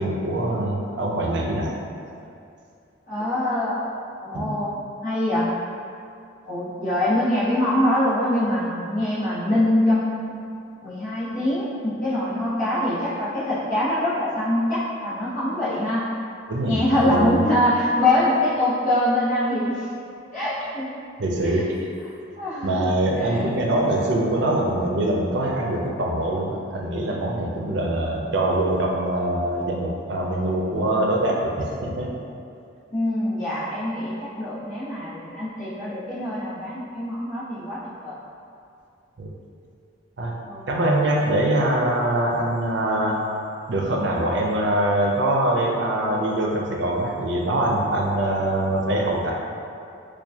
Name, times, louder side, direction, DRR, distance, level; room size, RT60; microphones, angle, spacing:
voice 1, 0.0-1.8 4.3-4.5 16.5-17.5 21.2-21.7 22.6-32.1 39.2-39.3 40.2-40.3 40.7-43.3 43.7-49.3, right 1 dB, 70° right, -1 dB, 0.5 m, -23 dB
voice 2, 3.1-3.7 4.2-4.7 5.0-5.5 6.4-10.4 10.8-16.1 16.7-19.9 20.3-20.9 21.5-21.6 22.4-22.9 23.3-23.4 32.9-38.1 40.5-41.0, left 1 dB, 40° left, -10 dB, 1.0 m, -24 dB
4.5 x 2.3 x 2.7 m, 2.5 s
head